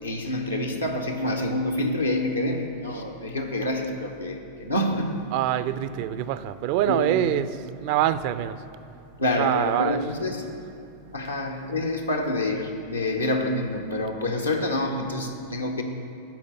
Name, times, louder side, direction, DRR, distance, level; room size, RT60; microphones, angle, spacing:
voice 1, 0.0-5.3 6.8-7.1 9.2-10.4 11.1-15.8, left 1 dB, 85° left, 1 dB, 0.8 m, -27 dB
voice 2, 5.3-8.6 9.4-10.0, right 12 dB, 45° right, 14 dB, 0.4 m, -25 dB
10.5 x 5.1 x 6.7 m, 2.7 s
figure-of-eight pair, 90°, 0 cm